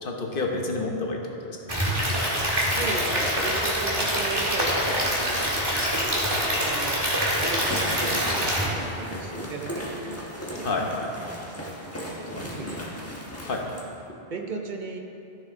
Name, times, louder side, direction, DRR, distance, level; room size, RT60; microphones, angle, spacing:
voice 1, 0.0-1.8 10.6-11.1 12.4-12.5 13.4-13.7, left 3 dB, 55° left, 1 dB, 1.1 m, -29 dB
Stream / Liquid, 1.7-8.7, equal, 25° right, 1.7 m, -25 dB
voice 2, 2.7-5.5 6.6-7.1 7.3-11.7 12.2-12.9 14.3-15.0, right 3 dB, 50° right, 2 dB, 0.8 m, -37 dB
sound 1, 7.4-13.9, equal, 15° left, 1.2 m, -36 dB
13.5 x 6.4 x 3.7 m, 2.7 s
omnidirectional pair, 1.1 m